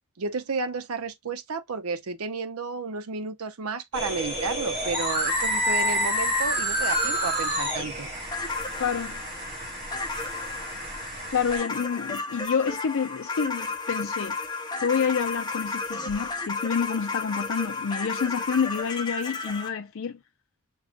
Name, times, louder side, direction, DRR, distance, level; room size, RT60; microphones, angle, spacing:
voice 1, 0.2-8.1, right 4 dB, 75° right, 0.7 m, -32 dB
sound 1, 3.9-11.6, equal, 25° right, 3.4 m, -29 dB
sound 2, 6.9-19.7, left 3 dB, 20° left, 0.7 m, -34 dB
voice 2, 8.8-9.2 11.3-14.4 14.8-20.2, left 6 dB, 60° left, 0.4 m, -28 dB
6.3 x 2.3 x 2.4 m
head